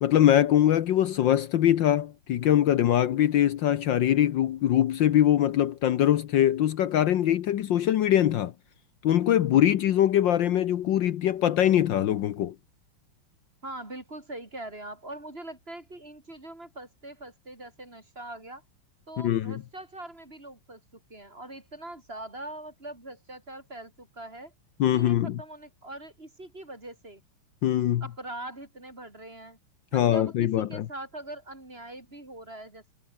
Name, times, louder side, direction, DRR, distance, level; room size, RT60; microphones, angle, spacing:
voice 1, 0.0-8.5 9.0-12.5 19.2-19.6 24.8-25.4 27.6-28.0 29.9-30.9, left 11 dB, 65° left, 1.5 m, -23 dB
voice 2, 13.6-18.6 19.1-24.5 24.9-27.2 28.0-29.6 29.9-32.9, right 1 dB, 25° right, 5.0 m, -42 dB
omnidirectional pair, 2.3 m